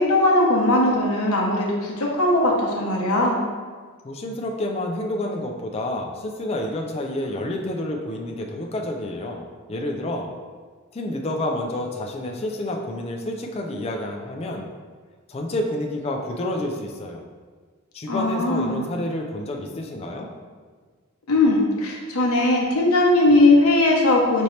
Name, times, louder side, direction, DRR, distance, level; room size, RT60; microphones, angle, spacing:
voice 1, 0.0-3.4 18.1-18.9 21.3-24.4, left 2 dB, 85° left, -1 dB, 0.8 m, -19 dB
voice 2, 4.0-10.3 10.9-14.7 15.3-17.2 17.9-20.3, left 1 dB, 30° left, 1 dB, 0.4 m, -29 dB
5.2 x 2.8 x 3.1 m, 1.5 s
head